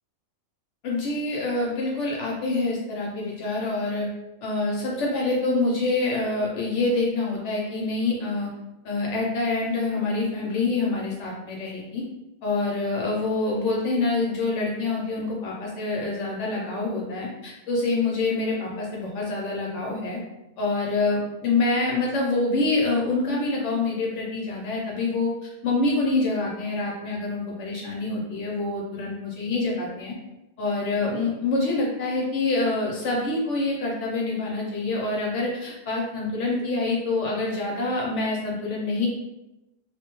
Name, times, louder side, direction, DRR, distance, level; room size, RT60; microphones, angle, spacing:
voice 1, 0.8-4.1 4.4-8.5 8.8-12.0 12.4-20.2 20.6-30.1 30.6-39.1, left 3 dB, 65° left, -2 dB, 0.8 m, -26 dB
2.4 x 2.1 x 2.9 m, 0.96 s
omnidirectional pair, 1.5 m